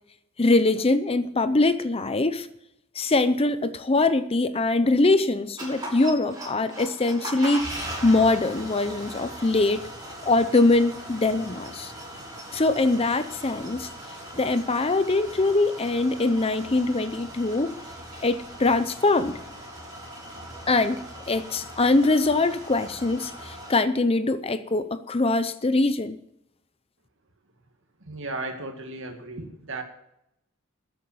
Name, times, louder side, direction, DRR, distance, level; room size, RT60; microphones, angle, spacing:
voice 1, 0.4-2.5 3.0-9.9 10.2-11.9 12.5-13.9 14.3-17.7 18.2-19.4 20.7-26.2, left 2 dB, 25° left, 12 dB, 0.6 m, -23 dB
sound 1, 5.6-23.7, right 1 dB, 20° right, 6.4 m, -39 dB
voice 2, 28.0-29.8, right 2 dB, 60° right, 4 dB, 2.2 m, -35 dB
13.0 x 8.1 x 7.7 m, 0.80 s
head